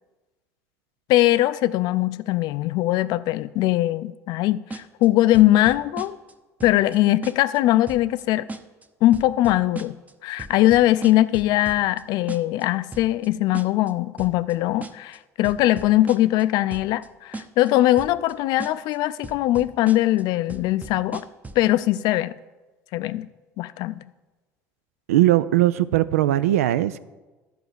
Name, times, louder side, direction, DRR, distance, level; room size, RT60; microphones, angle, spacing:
voice 1, 1.1-6.2 6.6-8.5 9.0-10.0 10.2-21.2 21.6-22.3 22.9-23.3 23.6-24.0, left 15 dB, 65° left, 0.4 m, -21 dB
sound 1, 4.7-5.1 5.3-6.3 6.6-7.0 7.2-7.6 7.9-8.2 8.5-8.8 9.1-10.1 10.4-12.0 12.3-12.6 12.9-13.3 13.5-13.9 14.2-14.5 14.8-15.2 15.4-16.4 16.7-17.1 17.3-17.7 18.0-18.3 18.6-19.0 19.2-20.2 20.5-21.7, right 2 dB, 20° right, 0.8 m, -37 dB
voice 2, 25.1-27.0, right 14 dB, 85° right, 0.3 m, -19 dB
11.0 x 4.7 x 6.7 m
hypercardioid pair, 70°, 8 cm